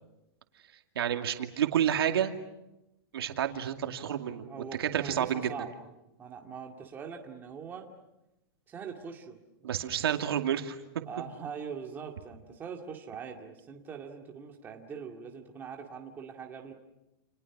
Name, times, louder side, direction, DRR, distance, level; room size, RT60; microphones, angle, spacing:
voice 1, 1.0-2.3 3.1-5.5 9.6-10.8, right 9 dB, 85° right, 5 dB, 2.4 m, -29 dB
voice 2, 4.5-5.7 6.2-7.9 8.7-9.4 9.8-9.9 11.0-16.7, right 6 dB, 15° right, 2 dB, 2.2 m, -42 dB
29.5 x 29.0 x 6.1 m, 0.94 s
supercardioid pair, 160°, 12 cm